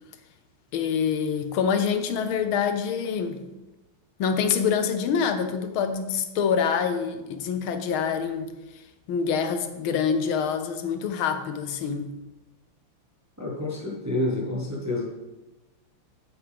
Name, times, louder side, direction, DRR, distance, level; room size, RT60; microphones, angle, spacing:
voice 1, 0.7-3.4 4.2-8.5 9.1-12.1, left 6 dB, 75° left, 8 dB, 1.5 m, -26 dB
voice 2, 13.4-15.0, left 2 dB, 10° right, -2 dB, 1.0 m, -28 dB
8.8 x 8.5 x 3.6 m, 1.0 s
omnidirectional pair, 2.4 m